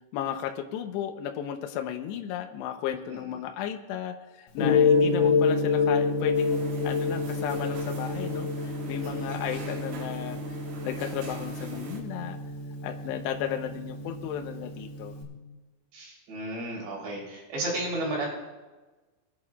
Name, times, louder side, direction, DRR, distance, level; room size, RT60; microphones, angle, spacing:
voice 1, 0.1-10.4 10.8-12.4 12.8-15.1, left 9 dB, 80° left, 5 dB, 2.6 m, -34 dB
Gong, 4.6-15.2, left 4 dB, 60° left, 3.2 m, -28 dB
sound 1, 6.3-12.0, right 2 dB, 80° right, 5.0 m, -42 dB
voice 2, 9.0-9.3 15.9-18.3, right 1 dB, 60° right, -4 dB, 5.5 m, -33 dB
24.0 x 10.5 x 2.4 m, 1.2 s
omnidirectional pair, 5.8 m